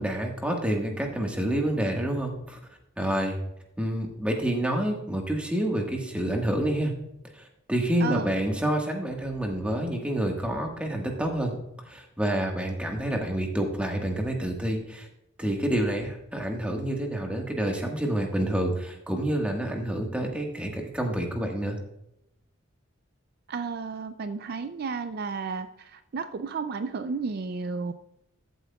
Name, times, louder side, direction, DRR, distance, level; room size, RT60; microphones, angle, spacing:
voice 1, 0.0-2.6 3.0-3.4 3.8-6.9 7.3-7.4 7.7-11.5 11.9-15.1 15.4-21.8, right 1 dB, 5° right, 1 dB, 1.5 m, -28 dB
voice 2, 23.5-27.9, right 4 dB, 50° right, 10 dB, 0.4 m, -32 dB
14.0 x 8.1 x 2.3 m, 0.82 s
head